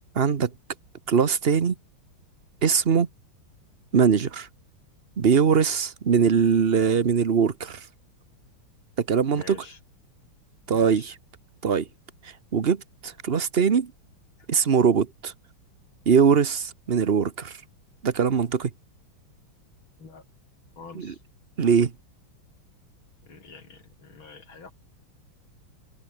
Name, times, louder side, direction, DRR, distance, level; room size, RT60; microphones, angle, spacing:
voice 1, 0.1-0.5 1.1-1.7 2.6-3.1 3.9-4.5 5.2-7.8 9.0-9.6 10.7-11.1 11.6-11.9 12.5-13.9 14.5-15.3 16.1-17.6 18.0-18.7 20.9-21.1 21.6-21.9, right 6 dB, 40° right, 1.0 m, -21 dB
voice 2, 9.3-9.8 10.7-11.1 20.0-20.2 20.8-21.2 23.2-24.7, left 5 dB, 70° left, 4.4 m, -46 dB
omnidirectional pair, 2.3 m